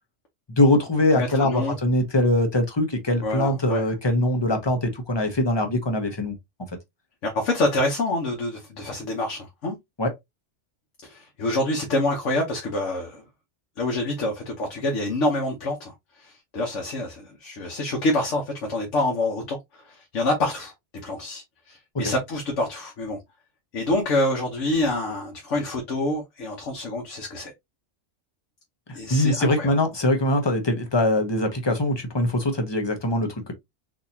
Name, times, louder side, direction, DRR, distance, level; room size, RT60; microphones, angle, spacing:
voice 1, 0.5-6.3 10.0-10.1 29.1-33.5, left 1 dB, 25° left, 0.8 m, -22 dB
voice 2, 1.1-1.7 3.2-3.8 7.2-9.8 11.0-13.2 13.8-20.7 21.0-23.2 23.7-27.5 28.9-29.7, left 2 dB, 75° left, 1.3 m, -27 dB
4.0 x 2.8 x 2.7 m
omnidirectional pair, 1.3 m